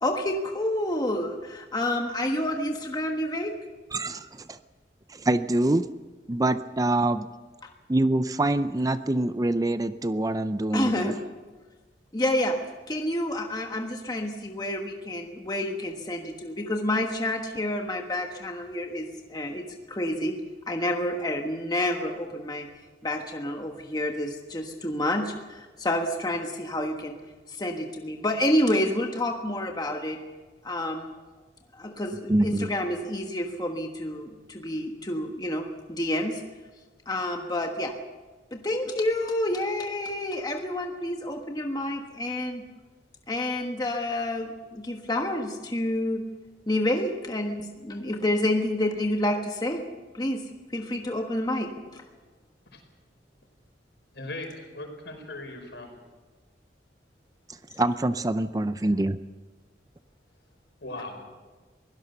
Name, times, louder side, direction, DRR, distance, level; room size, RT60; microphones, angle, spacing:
voice 1, 0.0-3.5 10.7-11.1 12.1-12.6 12.9-20.3 20.7-22.7 23.0-27.2 27.5-30.2 30.6-31.1 31.8-36.4 37.1-37.9 38.5-42.6 43.3-46.2 46.7-49.8 50.1-50.4 50.7-52.0, left 1 dB, 20° left, 3 dB, 1.3 m, -29 dB
voice 2, 3.9-4.6 5.1-5.9 6.3-7.3 7.9-11.1 32.3-32.7 57.8-59.2, right 2 dB, 20° right, 12 dB, 0.5 m, -25 dB
voice 3, 54.1-55.9 60.8-61.2, left 2 dB, 75° left, 3 dB, 5.1 m, -38 dB
23.0 x 17.0 x 6.8 m, 1.3 s
head